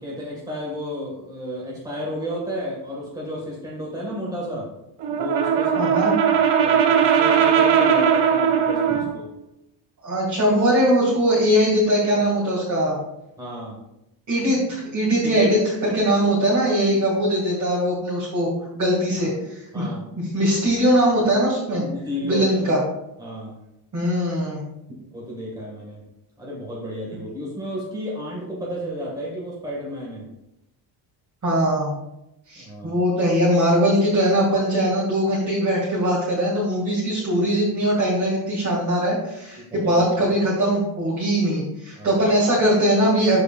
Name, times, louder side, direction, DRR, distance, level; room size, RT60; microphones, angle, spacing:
voice 1, 0.0-4.7 5.1-6.0 6.3-9.3 13.4-13.8 15.4-15.5 19.2-19.3 19.7-20.1 21.8-22.5 23.2-23.6 25.1-26.0 26.4-30.3 32.6-33.0 39.7-40.1 42.0-42.2, equal, 10° right, -4 dB, 2.0 m, -32 dB
Brass instrument, 5.0-9.2, right 8 dB, 60° right, 1.1 m, -19 dB
voice 2, 5.8-6.1 10.0-13.0 14.3-15.6 15.9-18.5 18.7-19.9 20.2-21.8 22.2-22.8 23.9-24.6 31.4-31.9 32.5-43.4, equal, 35° right, -6 dB, 2.4 m, -21 dB
13.0 x 4.7 x 2.5 m, 0.87 s
cardioid pair, 125°, 48 cm